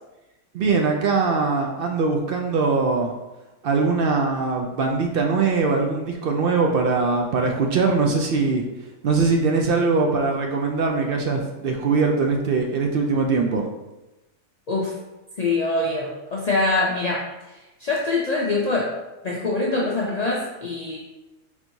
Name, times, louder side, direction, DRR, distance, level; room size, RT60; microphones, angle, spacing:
voice 1, 0.5-3.1 3.6-8.6 9.0-13.6, right 4 dB, 70° right, 2 dB, 0.5 m, -21 dB
voice 2, 15.4-18.9 19.2-21.0, left 2 dB, 75° left, -3 dB, 0.3 m, -24 dB
4.4 x 4.3 x 2.7 m, 1.0 s
omnidirectional pair, 1.5 m